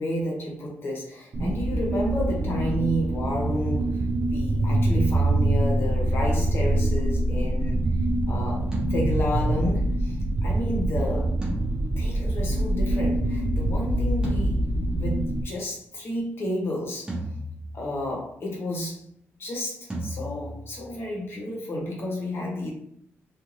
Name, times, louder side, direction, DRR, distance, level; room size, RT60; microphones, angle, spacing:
voice 1, 0.0-7.9 8.3-11.3 12.0-14.6 15.0-17.1 17.7-19.1 19.4-22.7, equal, 50° left, -2 dB, 0.9 m, -31 dB
sound 1, 1.3-15.4, right 1 dB, 45° right, 0.3 m, -25 dB
sound 2, 8.7-10.4 11.4-12.7 14.2-15.6 17.1-18.3 19.9-21.3, right 1 dB, 15° right, 0.7 m, -37 dB
2.5 x 2.4 x 3.0 m, 0.69 s
wide cardioid pair, 160°, 5 cm